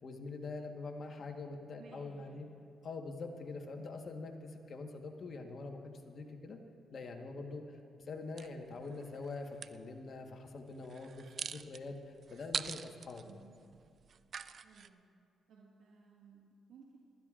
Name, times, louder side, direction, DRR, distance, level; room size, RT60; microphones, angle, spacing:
voice 1, 0.0-2.5 2.8-6.6 6.9-13.2, left 3 dB, 55° left, 3 dB, 1.3 m, -44 dB
voice 2, 1.8-2.5 3.7-3.9 13.2-13.6 14.6-15.1 15.5-17.0, right 5 dB, 80° right, -3 dB, 1.5 m, -59 dB
sound 1, 8.4-9.8 10.8-14.9, right 7 dB, 55° right, 0.4 m, -43 dB
25.5 x 12.5 x 2.5 m, 2.3 s
cardioid pair, 70°, 0 cm